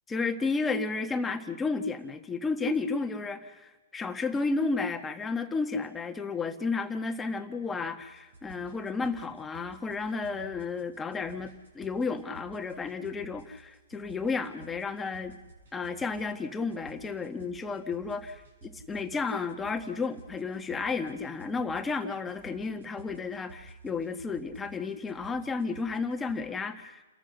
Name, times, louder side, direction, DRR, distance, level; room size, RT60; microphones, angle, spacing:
voice 1, 0.1-15.3 15.7-18.4 18.6-27.0, left 4 dB, 10° left, 7 dB, 1.5 m, -32 dB
sound 1, 8.0-26.4, right 3 dB, 70° right, 8.0 m, -53 dB
29.5 x 14.0 x 6.7 m, 1.1 s
hypercardioid pair, 135°, 0 cm